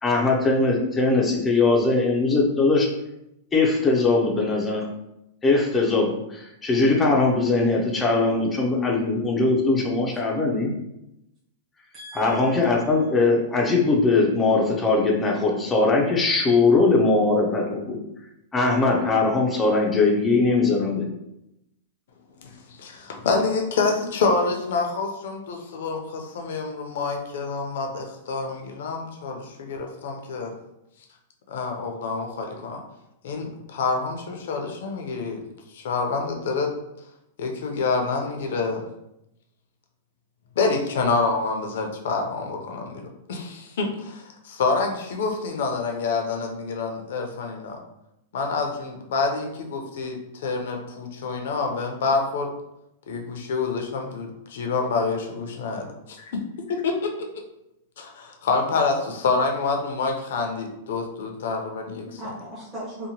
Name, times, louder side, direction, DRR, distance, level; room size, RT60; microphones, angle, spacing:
voice 1, 0.0-2.9 3.5-4.9 5.4-10.7 12.2-18.0 18.5-21.1, left 3 dB, 15° left, -1 dB, 0.4 m, -21 dB
voice 2, 11.9-13.1 61.9-63.1, right 1 dB, 15° right, -9 dB, 0.8 m, -39 dB
voice 3, 22.4-30.5 31.5-32.8 33.2-35.4 35.7-36.7 37.4-38.9 40.6-47.8 48.3-52.5 53.1-56.4 56.7-57.1 58.0-62.1, left 4 dB, 75° left, 3 dB, 0.5 m, -27 dB
2.8 x 2.1 x 2.8 m, 0.86 s
supercardioid pair, 155°, 0 cm